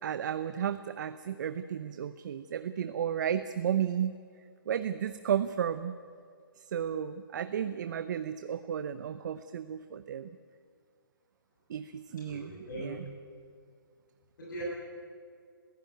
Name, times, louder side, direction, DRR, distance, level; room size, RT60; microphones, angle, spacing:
voice 1, 0.0-4.2 4.7-6.0 6.6-10.3 11.7-12.5 12.8-13.0, right 9 dB, 55° right, 12 dB, 0.7 m, -33 dB
voice 2, 12.2-13.0 14.4-14.6, right 1 dB, 55° left, -4 dB, 7.4 m, -40 dB
21.5 x 15.5 x 9.5 m, 2.2 s
hypercardioid pair, 140°, 12 cm